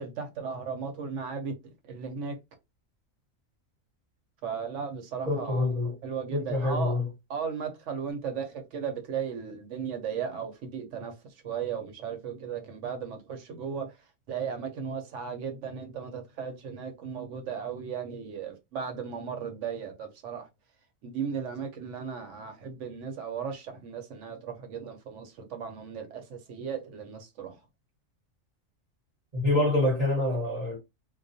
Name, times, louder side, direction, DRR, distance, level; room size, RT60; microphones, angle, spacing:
voice 1, 0.0-2.4 4.4-5.7 6.0-7.0 7.3-14.0 14.3-20.5 21.0-27.6, right 6 dB, 70° right, 0.9 m, -36 dB
voice 2, 5.3-5.9 6.3-7.1 29.3-30.8, left 2 dB, 35° right, 0.9 m, -26 dB
2.3 x 2.2 x 2.6 m
omnidirectional pair, 1.4 m